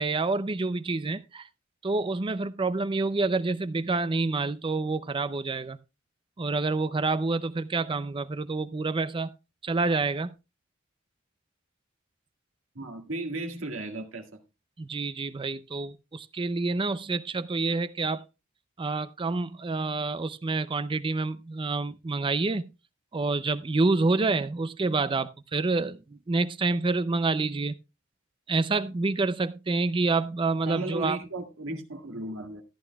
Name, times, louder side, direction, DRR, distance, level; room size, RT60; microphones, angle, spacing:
voice 1, 0.0-1.5 1.8-5.8 6.4-9.3 9.6-10.3 14.8-18.2 18.8-22.7 23.1-27.7 28.5-31.2, right 3 dB, 25° right, 0.5 m, -28 dB
voice 2, 12.8-14.3 30.7-32.6, right 2 dB, 75° right, 1.9 m, -35 dB
14.0 x 10.5 x 2.3 m
head